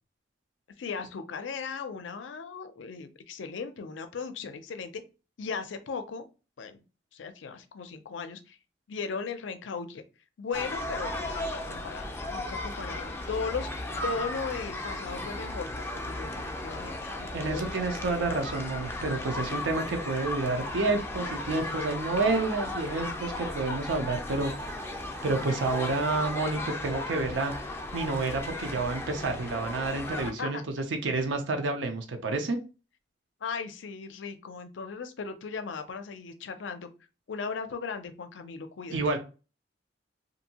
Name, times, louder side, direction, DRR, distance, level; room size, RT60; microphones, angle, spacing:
voice 1, 0.8-4.9 5.4-6.2 6.6-6.8 7.1-8.6 8.9-10.0 10.4-13.7 14.0-17.8 30.2-30.6 33.4-36.9 37.3-39.0, left 5 dB, 85° left, 9 dB, 0.4 m, -37 dB
sound 1, 10.5-30.3, left 1 dB, 15° left, 0.3 m, -36 dB
voice 2, 17.3-24.8 25.2-27.5 27.9-32.6 38.9-39.2, right 3 dB, 85° right, 5 dB, 0.5 m, -29 dB
2.7 x 2.6 x 2.8 m, 0.32 s
head